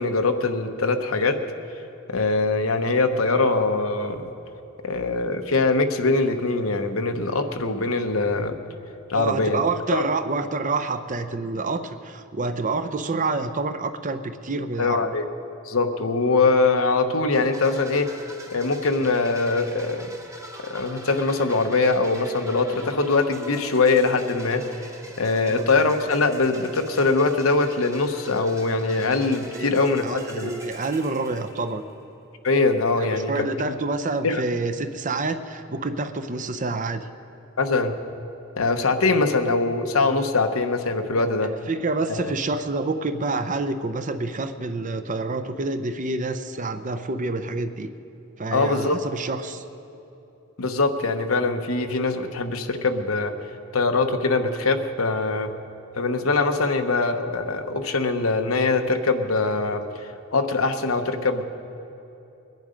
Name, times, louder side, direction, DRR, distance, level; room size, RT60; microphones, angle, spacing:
voice 1, 0.0-1.4 2.1-4.3 4.8-8.5 9.1-9.6 9.9-10.0 14.8-15.2 15.6-18.1 18.5-20.1 20.7-24.6 25.2-30.5 32.4-33.5 34.2-34.4 37.6-37.9 38.6-41.5 42.1-42.2 48.5-49.0 50.6-53.3 53.7-55.5 56.0-59.8 60.3-61.4, left 3 dB, 90° left, 6 dB, 1.0 m, -22 dB
voice 2, 9.1-15.1 25.4-25.6 29.5-29.7 30.0-31.8 33.0-37.1 41.7-47.9 48.4-49.6, right 3 dB, 40° right, 10 dB, 0.6 m, -28 dB
sound 1, 17.3-32.1, right 1 dB, 15° right, 1.0 m, -43 dB
21.5 x 10.5 x 5.1 m, 2.9 s
head